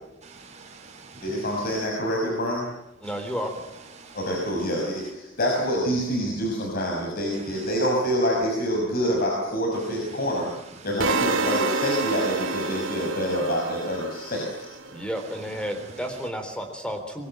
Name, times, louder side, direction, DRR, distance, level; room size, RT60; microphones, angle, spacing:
voice 1, 0.2-1.8 3.0-5.1 7.3-7.7 9.7-11.1 14.3-14.4 15.1-16.2, right 4 dB, 35° right, 4.5 m, -46 dB
voice 2, 1.2-2.7 4.1-10.5 10.8-14.5, equal, 50° left, 5.5 m, -26 dB
voice 3, 3.0-3.5 14.9-17.3, equal, 5° left, 3.7 m, -32 dB
sound 1, 11.0-15.1, right 3 dB, 80° right, 2.4 m, -28 dB
23.5 x 22.0 x 9.0 m
head